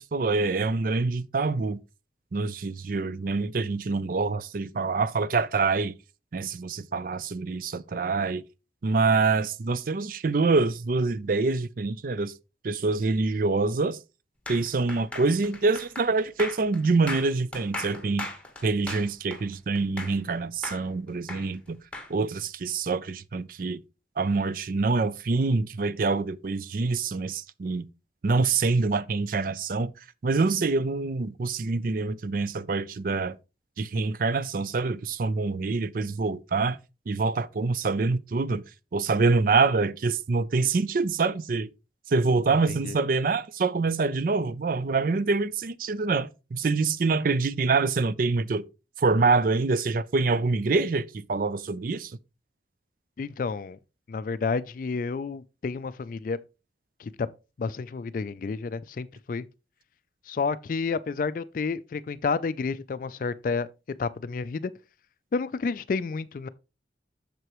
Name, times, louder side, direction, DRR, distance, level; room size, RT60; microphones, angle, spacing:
voice 1, 0.0-1.8 2.3-5.9 6.3-8.4 8.8-12.3 12.6-14.0 14.5-18.3 18.6-21.8 22.1-23.8 24.2-27.9 28.2-29.9 30.2-33.4 33.8-36.8 37.1-38.6 38.9-41.7 42.1-48.6 49.0-52.2, right 3 dB, 50° right, 0.4 m, -25 dB
sound 1, 14.5-20.3 20.6-22.1, left 2 dB, 5° left, 1.5 m, -38 dB
voice 2, 53.2-53.8 54.1-56.4 57.0-57.3 57.6-59.5 60.3-63.7 64.0-64.7 65.3-66.5, left 4 dB, 50° left, 0.3 m, -30 dB
7.8 x 6.8 x 3.0 m
head